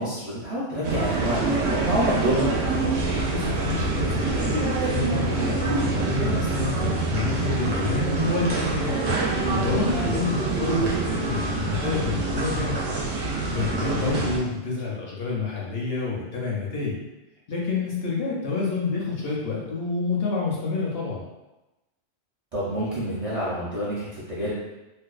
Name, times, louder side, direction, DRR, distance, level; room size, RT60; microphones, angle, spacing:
voice 1, 0.0-2.5 14.0-14.2 22.5-24.5, equal, 45° right, -10 dB, 0.4 m, -28 dB
sound 1, 0.8-14.4, right 3 dB, 85° right, 0.9 m, -25 dB
voice 2, 3.3-17.0 17.5-21.2, left 4 dB, 65° left, -4 dB, 0.7 m, -28 dB
2.5 x 2.2 x 2.3 m, 1.0 s
omnidirectional pair, 1.2 m